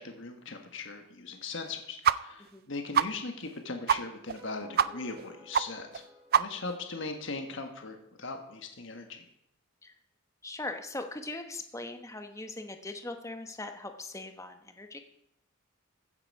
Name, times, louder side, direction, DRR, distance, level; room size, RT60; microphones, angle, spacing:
voice 1, 0.0-6.0 6.4-9.3, left 3 dB, 60° left, 5 dB, 1.5 m, -39 dB
sound 1, 2.0-2.2 2.5-2.6 2.9-3.1 3.5-3.6 3.9-4.0 4.3-4.4 4.8-4.9 5.2-5.3 5.5-5.6 5.9-6.0 6.3-6.7, right 8 dB, 45° right, 0.4 m, -24 dB
sound 2, 4.2-7.3, left 2 dB, 15° right, 3.7 m, -54 dB
voice 2, 10.4-15.0, left 2 dB, 15° left, 6 dB, 1.0 m, -40 dB
15.0 x 9.8 x 4.8 m, 0.79 s
head